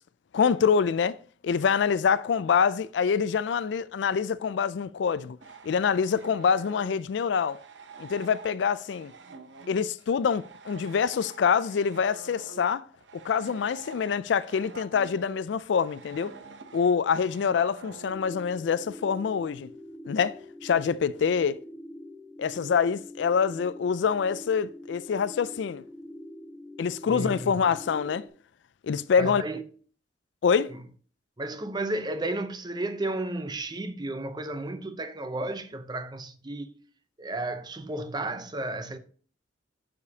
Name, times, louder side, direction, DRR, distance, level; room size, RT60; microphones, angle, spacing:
voice 1, 0.3-1.2 1.4-5.4 5.6-7.6 8.0-9.1 9.7-12.8 13.1-16.3 16.7-19.7 20.1-20.4 20.6-21.6 22.4-25.8 26.8-28.2 28.8-29.4 30.4-30.7, left 6 dB, 65° left, 0.4 m, -25 dB
sound 1, 5.4-18.1, right 4 dB, 70° right, 0.8 m, -47 dB
sound 2, 18.1-28.3, left 1 dB, ahead, 1.1 m, -45 dB
voice 2, 27.1-27.6 29.2-29.6 31.4-36.7 37.2-39.0, right 2 dB, 25° right, 0.6 m, -33 dB
11.5 x 5.1 x 2.8 m
head